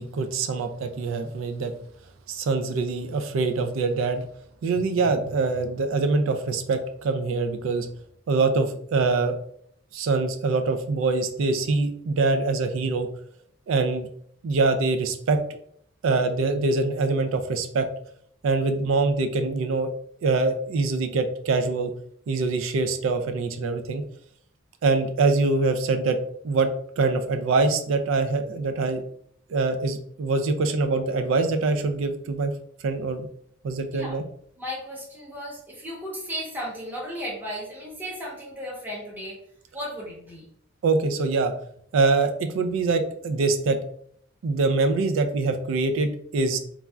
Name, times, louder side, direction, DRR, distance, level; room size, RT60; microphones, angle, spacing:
voice 1, 0.0-1.7 2.3-4.2 4.6-7.9 8.3-9.4 9.9-13.1 13.7-14.1 14.4-15.4 16.0-17.9 18.4-19.9 20.2-21.9 22.3-24.0 24.8-26.2 26.4-26.7 27.0-29.0 29.5-32.5 32.8-33.3 33.6-34.2 40.8-41.5 41.9-43.8 44.4-46.6, right 3 dB, 80° right, 7 dB, 0.4 m, -24 dB
voice 2, 34.6-39.4 39.7-40.5, equal, 10° right, -5 dB, 0.8 m, -35 dB
3.1 x 2.4 x 2.2 m, 0.65 s
head